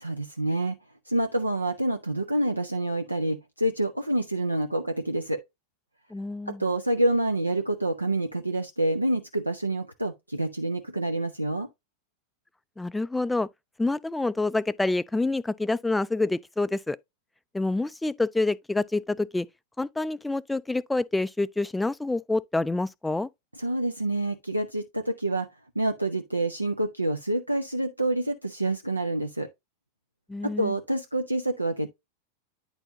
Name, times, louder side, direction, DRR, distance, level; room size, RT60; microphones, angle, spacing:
voice 1, 0.0-0.8 1.1-5.4 6.5-11.7 23.6-25.5 25.8-29.5 30.4-31.9, right 1 dB, 85° right, 0.6 m, -27 dB
voice 2, 6.1-6.6 12.8-13.5 13.8-17.0 17.5-19.5 19.8-23.3 30.3-30.7, left 2 dB, 5° left, 0.3 m, -27 dB
9.6 x 4.4 x 2.7 m
figure-of-eight pair, 90°, 0 cm